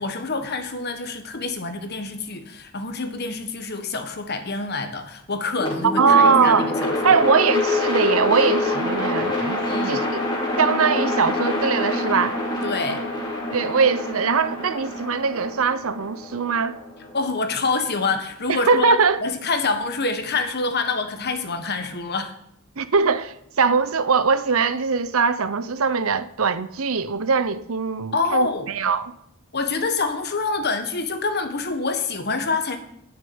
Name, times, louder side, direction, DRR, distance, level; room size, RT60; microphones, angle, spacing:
voice 1, 0.0-7.2 9.6-10.0 12.6-13.0 17.1-22.3 28.1-28.7 29.5-32.8, left 3 dB, 50° left, 1.4 m, -26 dB
sound 1, 5.6-17.7, left 2 dB, 20° left, 2.7 m, -26 dB
voice 2, 6.0-6.7 7.0-10.1 10.6-12.4 13.5-16.8 18.5-19.2 22.8-29.1, right 5 dB, 75° right, 0.7 m, -21 dB
10.0 x 6.7 x 8.7 m
head